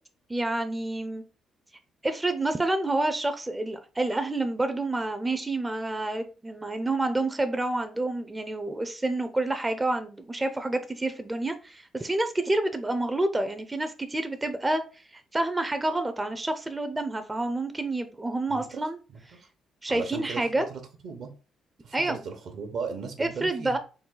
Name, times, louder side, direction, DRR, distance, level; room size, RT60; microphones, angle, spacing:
voice 1, 0.3-1.2 2.0-19.0 19.8-20.7 21.9-22.2 23.2-23.8, right 2 dB, 15° right, 0.4 m, -28 dB
voice 2, 18.5-18.8 19.1-19.5 19.9-21.3 21.8-23.8, right 5 dB, 70° right, 0.9 m, -37 dB
3.9 x 2.2 x 3.8 m
cardioid pair, 90°, 0 cm